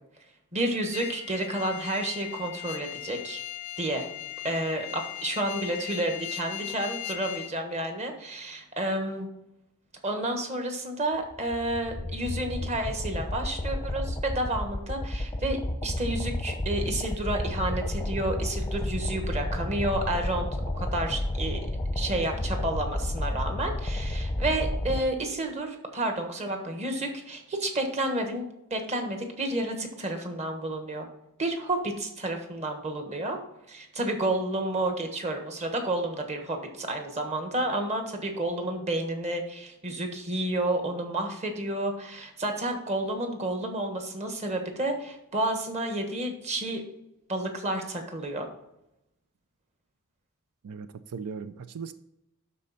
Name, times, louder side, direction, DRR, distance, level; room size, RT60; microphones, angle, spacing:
voice 1, 0.5-3.4 3.8-4.1 4.4-9.3 10.0-20.5 20.7-21.6 21.9-28.4 28.7-31.1 31.4-33.4 33.7-46.8 47.3-48.5, right 1 dB, 30° right, 4 dB, 1.3 m, -30 dB
sound 1, 0.9-7.5, left 14 dB, 70° left, 0.5 m, -38 dB
sound 2, 11.2-25.0, left 1 dB, 20° left, 0.6 m, -31 dB
voice 2, 50.6-51.9, right 5 dB, 90° right, 12 dB, 0.5 m, -38 dB
12.0 x 4.2 x 4.1 m, 0.85 s
head